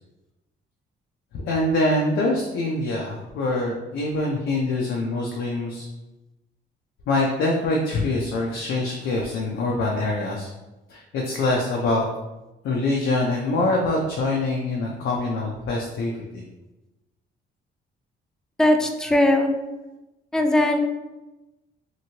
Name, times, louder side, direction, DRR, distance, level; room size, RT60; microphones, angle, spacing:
voice 1, 1.4-5.9 7.1-10.5 10.9-12.0 12.6-16.4, left 2 dB, 75° left, -1 dB, 0.5 m, -24 dB
voice 2, 18.6-19.5 20.3-20.8, left 1 dB, 5° left, 4 dB, 0.3 m, -19 dB
2.9 x 2.6 x 2.8 m, 1.0 s
cardioid pair, 90°, 20 cm